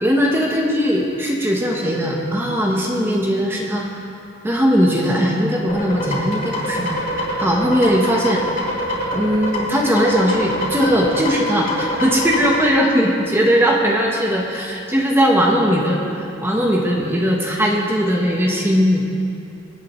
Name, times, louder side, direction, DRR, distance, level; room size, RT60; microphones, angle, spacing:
voice 1, 0.0-3.9 4.4-8.6 9.1-19.0, equal, 10° right, -2 dB, 1.1 m, -19 dB
sound 1, 5.7-12.5, left 1 dB, 45° left, 2.5 m, -25 dB
23.0 x 8.3 x 3.2 m, 2.6 s
head